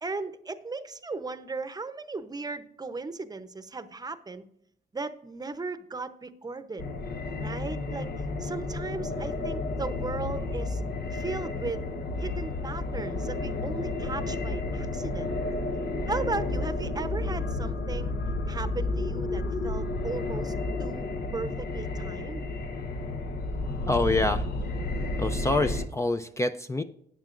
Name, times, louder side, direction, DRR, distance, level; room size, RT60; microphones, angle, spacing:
voice 1, 0.0-4.5 4.9-6.8 7.4-8.1 8.4-10.8 11.1-11.9 12.2-15.3 16.1-18.1 18.5-21.1 21.3-22.5, right 3 dB, 25° right, 11 dB, 0.8 m, -36 dB
sound 1, 6.8-25.9, left 2 dB, 65° left, 1.1 m, -31 dB
voice 2, 23.9-24.5 25.2-26.8, left 2 dB, 15° left, 8 dB, 0.5 m, -26 dB
13.5 x 9.6 x 2.5 m, 0.72 s
cardioid pair, 110°, 17 cm